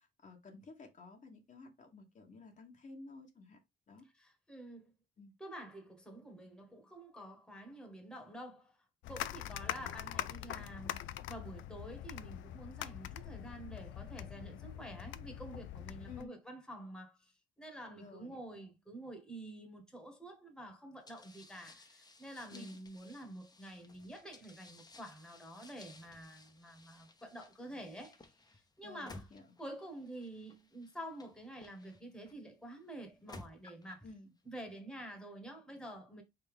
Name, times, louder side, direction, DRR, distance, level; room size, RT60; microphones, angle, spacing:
voice 1, 0.2-3.6 3.9-4.1 5.2-5.3 9.4-9.9 16.0-16.4 18.0-18.4 22.5-22.8 28.8-29.4 34.0-34.3, left 3 dB, 40° left, 1.1 m, -53 dB
voice 2, 4.0-4.9 5.4-28.3 28.8-29.3 29.6-34.0 34.4-36.2, right 1 dB, 5° left, 1.3 m, -49 dB
sound 1, 9.0-16.3, left 13 dB, 75° left, 0.4 m, -43 dB
sound 2, 21.1-32.3 33.0-34.1, left 2 dB, 20° left, 0.8 m, -57 dB
4.1 x 3.5 x 3.6 m
cardioid pair, 90°, 20 cm